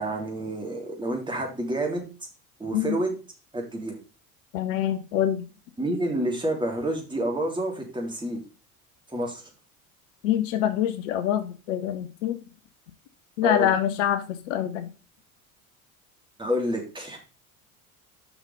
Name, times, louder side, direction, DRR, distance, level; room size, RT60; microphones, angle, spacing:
voice 1, 0.0-2.1 2.6-3.2 3.5-4.0 5.8-8.4 9.1-9.4 13.4-13.7 16.4-17.2, right 1 dB, 10° right, 0 dB, 3.0 m, -28 dB
voice 2, 4.5-5.4 10.2-12.4 13.4-14.9, left 11 dB, 60° left, 10 dB, 0.9 m, -25 dB
6.9 x 5.7 x 5.5 m, 0.33 s
figure-of-eight pair, 65°, 43 cm